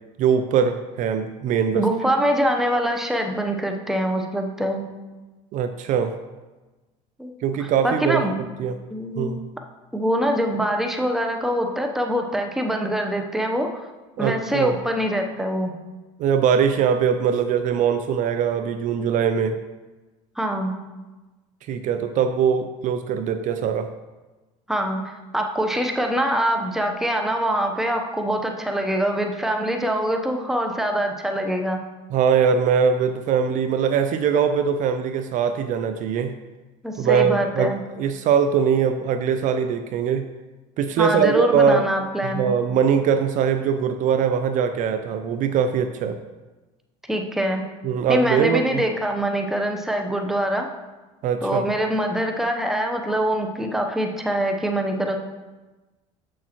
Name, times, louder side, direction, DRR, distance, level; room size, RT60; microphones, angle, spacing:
voice 1, 0.2-1.9 5.5-6.1 7.4-8.2 8.6-8.8 9.2-9.4 14.2-14.8 16.2-19.6 21.7-23.9 32.1-36.3 37.0-40.3 40.8-41.8 42.2-46.2 47.8-48.8 51.2-51.7, right 7 dB, 50° right, 9 dB, 0.4 m, -21 dB
voice 2, 1.7-4.8 7.2-7.3 7.6-8.4 8.9-9.3 9.9-13.7 14.2-15.7 20.4-20.8 24.7-31.8 36.8-37.8 41.0-42.6 47.1-47.6 48.1-50.7 51.4-55.2, equal, ahead, 3 dB, 0.8 m, -24 dB
7.1 x 6.3 x 3.0 m, 1.2 s
supercardioid pair, 100°, 16 cm